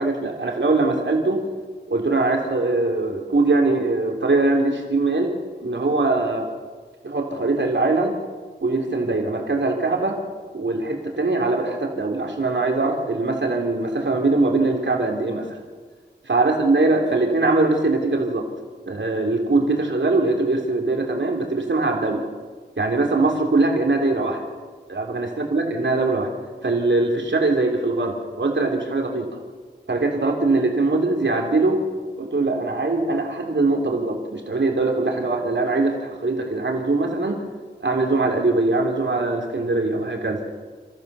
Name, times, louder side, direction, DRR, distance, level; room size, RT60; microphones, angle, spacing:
voice 1, 0.0-1.4 1.9-5.3 5.6-6.5 7.0-8.1 8.6-10.2 10.5-15.6 16.2-18.5 18.9-22.2 22.8-24.4 24.9-26.3 26.6-29.3 29.9-31.8 32.2-37.4 37.8-40.4, right 2 dB, 80° right, 1 dB, 3.2 m, -22 dB
29.5 x 14.5 x 6.8 m, 1.5 s
wide cardioid pair, 50°, 19 cm